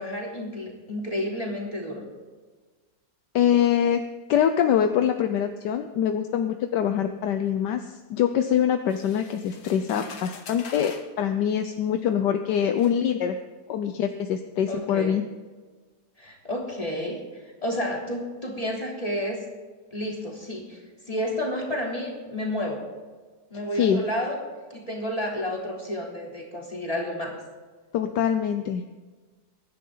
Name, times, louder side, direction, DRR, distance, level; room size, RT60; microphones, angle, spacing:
voice 1, 0.0-2.0 14.7-15.2 16.2-17.2 17.6-19.4 19.9-20.8 21.1-22.8 23.5-24.4 24.7-27.4, left 1 dB, 20° left, -2 dB, 3.6 m, -30 dB
voice 2, 3.3-4.0 4.3-13.4 13.7-15.3 23.7-24.0 27.9-28.8, left 9 dB, 75° left, 7 dB, 1.4 m, -24 dB
sound 1, 8.9-11.1 12.1-12.2 12.8-13.0, left 5 dB, 60° left, 1.7 m, -44 dB
23.5 x 10.5 x 3.9 m, 1.4 s
omnidirectional pair, 1.9 m